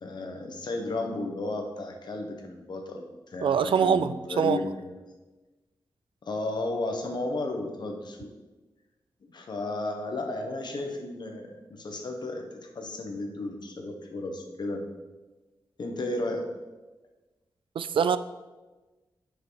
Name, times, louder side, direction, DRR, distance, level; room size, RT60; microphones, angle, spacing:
voice 1, 0.0-4.9 6.2-8.3 9.2-14.8 15.8-16.5, left 2 dB, 55° left, 1.1 m, -34 dB
voice 2, 3.4-4.6 17.8-18.2, right 7 dB, 75° right, 0.3 m, -24 dB
9.6 x 5.3 x 4.0 m
wide cardioid pair, 165°, 9 cm